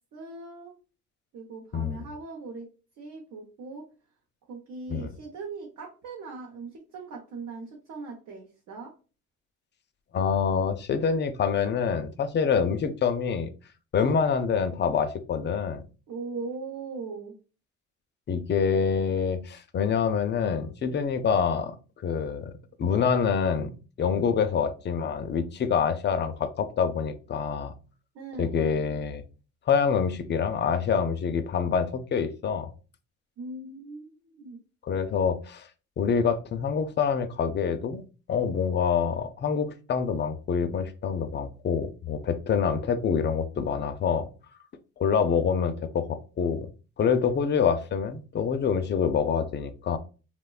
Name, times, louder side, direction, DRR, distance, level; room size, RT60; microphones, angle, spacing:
voice 1, 0.1-0.7 1.3-2.7 3.0-3.8 4.5-8.9 14.0-14.2 16.1-17.3 28.1-28.5 33.4-34.6, right 4 dB, 75° right, -1 dB, 0.7 m, -39 dB
voice 2, 10.1-13.5 13.9-15.9 18.3-21.8 22.0-22.5 22.8-23.7 24.0-27.7 28.4-29.2 29.7-32.7 34.8-35.7 36.0-38.0 38.3-44.3 45.0-46.7 47.0-50.0, left 6 dB, 40° left, 9 dB, 0.4 m, -26 dB
3.1 x 2.1 x 2.3 m, 0.34 s
cardioid pair, 90°, 30 cm